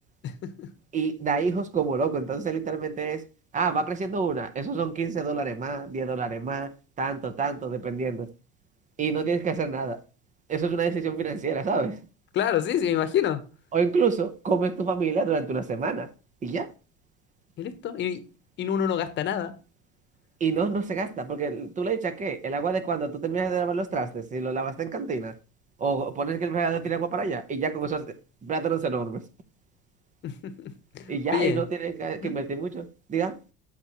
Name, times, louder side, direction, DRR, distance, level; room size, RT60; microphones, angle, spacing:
voice 1, 0.2-0.7 12.3-13.4 17.6-18.2 18.6-19.5 30.2-31.6 32.2-32.3, left 9 dB, 40° left, 1.0 m, -27 dB
voice 2, 0.9-3.2 3.5-8.3 9.0-10.0 10.5-12.0 13.7-16.1 16.4-16.7 20.4-25.3 25.8-28.2 28.4-29.2 31.1-33.4, right 5 dB, 25° right, 0.9 m, -28 dB
8.5 x 6.6 x 3.0 m
cardioid pair, 145°, 29 cm